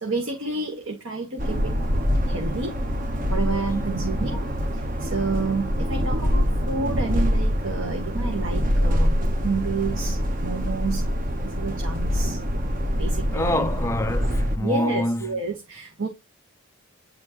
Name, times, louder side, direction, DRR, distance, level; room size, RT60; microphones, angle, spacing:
voice 1, 0.0-1.7 2.3-2.8 3.3-4.4 5.0-11.0 11.4-12.4 12.9-13.6 14.6-16.1, right 3 dB, 65° right, 1.5 m, -29 dB
sound 1, 1.4-14.6, equal, 40° right, 0.9 m, -25 dB
voice 2, 13.3-15.4, left 1 dB, 10° left, 0.3 m, -26 dB
9.4 x 4.3 x 2.9 m
head